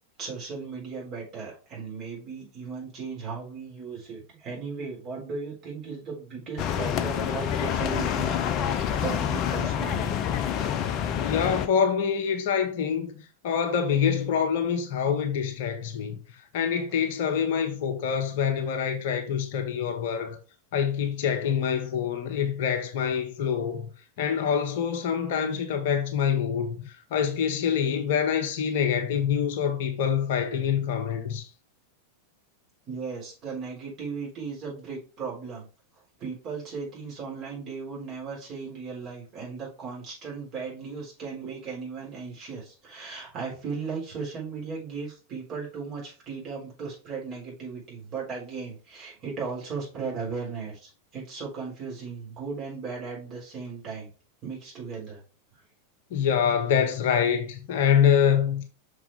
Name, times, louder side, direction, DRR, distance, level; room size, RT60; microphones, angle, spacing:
voice 1, 0.2-10.2 32.9-35.7 36.2-54.1 54.4-55.2, right 5 dB, 35° right, 3.7 m, -36 dB
sound 1, 6.6-11.7, left 9 dB, 35° left, 0.6 m, -27 dB
voice 2, 11.2-20.4 20.7-23.9 24.2-31.5 56.1-58.7, left 7 dB, 50° left, 1.0 m, -26 dB
5.9 x 4.8 x 3.5 m
figure-of-eight pair, 90°, 0 cm